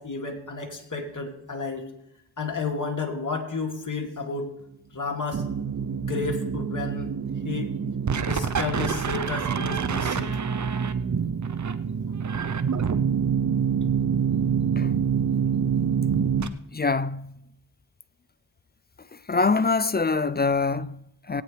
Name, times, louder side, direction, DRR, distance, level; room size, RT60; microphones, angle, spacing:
voice 1, 0.0-1.9 2.4-4.5 4.9-5.5 5.9-7.1 7.4-7.7 8.2-10.4, left 4 dB, 40° left, 2.4 m, -31 dB
sound 1, 5.3-16.5, right 7 dB, 40° right, 0.7 m, -26 dB
voice 2, 16.7-17.3 19.1-21.4, left 4 dB, 25° left, 0.4 m, -25 dB
19.5 x 8.9 x 3.3 m
cardioid pair, 55°, 47 cm